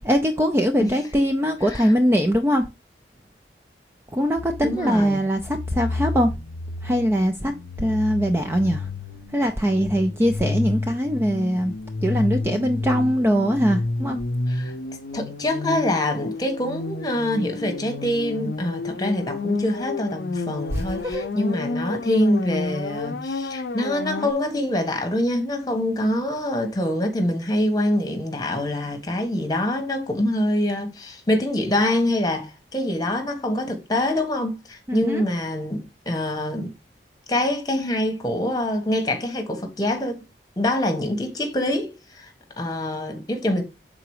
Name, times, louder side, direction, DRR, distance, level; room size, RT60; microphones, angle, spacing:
voice 1, 0.0-2.6 4.1-6.3 6.8-7.5 7.8-8.9 9.3-11.7 12.0-14.2 20.7-21.3 34.9-35.2, equal, 15° right, 0.4 m, -22 dB
sound 1, 4.4-24.3, left 3 dB, 70° left, 0.6 m, -30 dB
voice 2, 4.6-5.2 14.5-14.7 15.1-36.7 37.3-40.2 40.6-42.3 42.6-43.6, left 1 dB, 20° left, 1.3 m, -25 dB
5.8 x 3.9 x 4.8 m
head